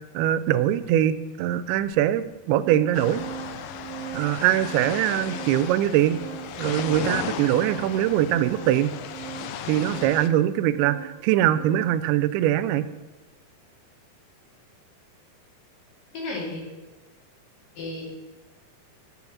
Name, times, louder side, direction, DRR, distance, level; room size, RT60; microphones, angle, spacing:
voice 1, 0.1-3.2 4.1-6.2 6.6-8.9 9.7-12.9, right 12 dB, 90° right, 14 dB, 2.5 m, -22 dB
Organ, 0.8-0.9 1.8-1.9 2.2-12.1, right 11 dB, 40° right, 2.0 m, -40 dB
sound 1, 2.9-10.3, left 9 dB, 85° left, 2.5 m, -36 dB
voice 2, 16.1-16.6 17.8-18.1, left 2 dB, 60° left, -3 dB, 3.8 m, -33 dB
8.5 x 6.3 x 7.1 m, 1.2 s
omnidirectional pair, 4.5 m